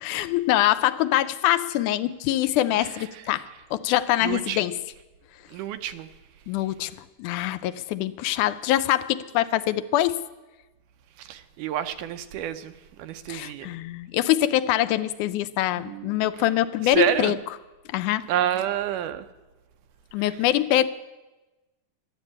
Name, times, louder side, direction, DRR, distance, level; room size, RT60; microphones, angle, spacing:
voice 1, 0.0-3.5 3.7-4.7 6.5-6.9 7.2-10.2 13.3-17.3 17.9-18.2 20.1-20.9, left 13 dB, 80° left, 2.0 m, -24 dB
voice 2, 2.7-3.4 4.2-4.6 5.5-6.1 11.2-13.7 15.8-16.2 16.8-17.4 18.3-19.3 20.2-20.5, right 11 dB, 85° right, 2.3 m, -29 dB
12.5 x 9.9 x 8.5 m
omnidirectional pair, 3.6 m